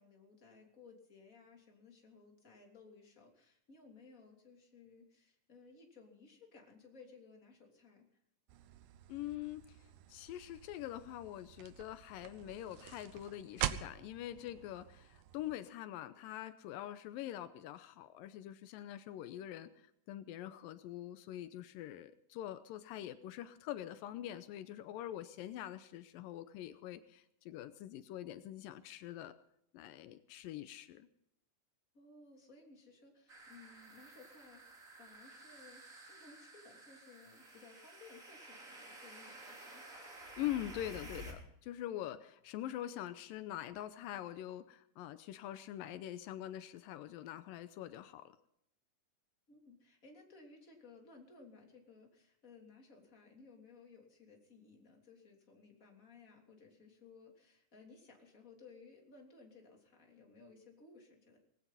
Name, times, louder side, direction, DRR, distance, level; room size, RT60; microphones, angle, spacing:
voice 1, 0.0-8.0 31.9-39.8 49.5-61.4, left 4 dB, 25° left, 1 dB, 3.3 m, -59 dB
sound 1, 8.5-15.5, right 12 dB, 75° right, 2.3 m, -45 dB
voice 2, 9.1-9.8 10.1-29.3 29.7-31.1 40.4-48.4, left 12 dB, 85° left, 12 dB, 2.5 m, -44 dB
sound 2, 33.3-41.3, right 2 dB, 25° right, 3.4 m, -53 dB
19.0 x 16.5 x 4.1 m, 0.75 s
omnidirectional pair, 4.0 m